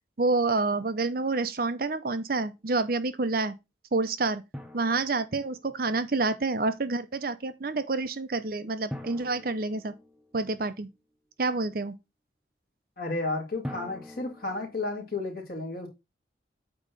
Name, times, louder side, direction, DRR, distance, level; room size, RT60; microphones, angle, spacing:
voice 1, 0.2-3.5 3.9-4.4 4.7-9.9 10.3-10.9 11.4-11.9, right 3 dB, 50° right, 0.6 m, -28 dB
Drum, 4.5-6.0 8.9-10.7 13.6-15.3, left 1 dB, 5° right, 0.7 m, -43 dB
voice 2, 13.0-15.9, left 2 dB, 50° left, 2.3 m, -32 dB
8.3 x 3.1 x 5.3 m
head